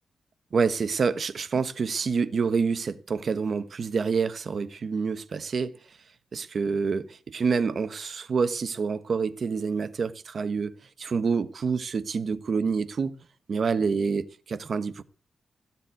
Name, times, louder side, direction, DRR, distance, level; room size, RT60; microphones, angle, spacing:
voice 1, 0.5-5.7 6.3-10.7 11.0-13.2 13.5-15.0, right 5 dB, 45° right, 1.1 m, -27 dB
16.5 x 7.5 x 8.3 m
wide cardioid pair, 175°, 0 cm